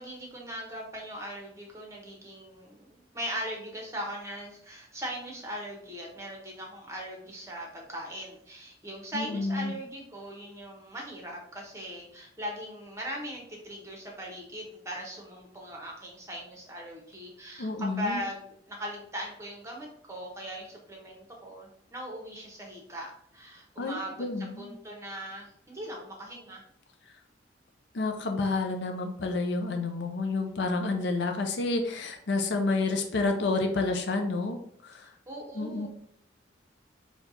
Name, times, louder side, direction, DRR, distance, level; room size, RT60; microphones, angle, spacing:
voice 1, 0.0-26.6 35.0-35.9, equal, 15° right, -1 dB, 1.0 m, -40 dB
voice 2, 9.1-9.7 17.6-18.2 23.8-24.7 27.9-34.6 34.8-35.1 35.5-35.9, left 3 dB, 60° left, 4 dB, 0.5 m, -29 dB
4.4 x 2.3 x 3.9 m, 0.67 s
head